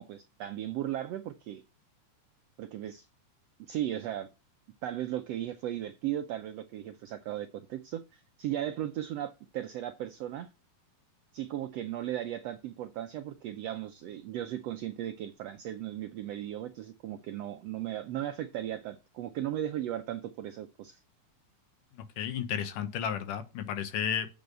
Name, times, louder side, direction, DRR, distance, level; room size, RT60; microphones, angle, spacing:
voice 1, 0.0-1.6 2.6-3.1 3.6-4.3 4.8-10.5 11.3-21.0, right 12 dB, 80° right, 1.4 m, -36 dB
voice 2, 22.2-24.3, left 8 dB, 80° left, 2.6 m, -32 dB
7.9 x 5.4 x 7.5 m
omnidirectional pair, 3.7 m